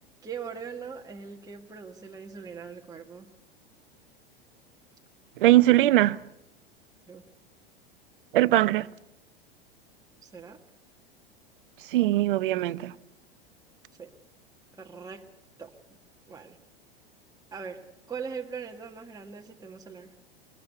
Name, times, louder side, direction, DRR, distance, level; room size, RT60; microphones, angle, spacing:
voice 1, 0.2-3.3 7.1-7.2 10.2-10.6 14.0-14.1 14.8-15.3 15.6-15.8 16.3-16.6 17.5-20.1, right 6 dB, 10° right, 1.6 m, -40 dB
voice 2, 5.4-6.2 8.3-8.9 11.9-12.9, right 16 dB, 60° right, 0.8 m, -21 dB
23.5 x 20.5 x 8.0 m
figure-of-eight pair, 85°, 30 cm